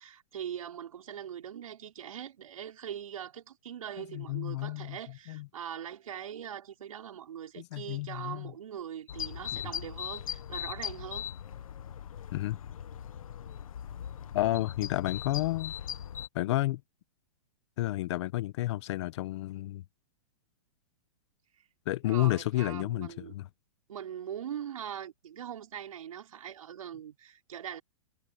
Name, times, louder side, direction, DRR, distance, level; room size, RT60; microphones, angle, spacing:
voice 1, 0.0-11.3 22.0-23.3 23.9-27.8, right 9 dB, 85° right, 5.9 m, -41 dB
voice 2, 4.1-5.0 5.3-5.5 7.6-8.5 12.3-12.6 14.3-15.7 16.3-16.8 17.8-19.8 21.9-23.5, left 16 dB, 55° left, 1.3 m, -31 dB
sound 1, 9.1-16.3, left 9 dB, 85° left, 1.9 m, -40 dB
hypercardioid pair, 145°, 17 cm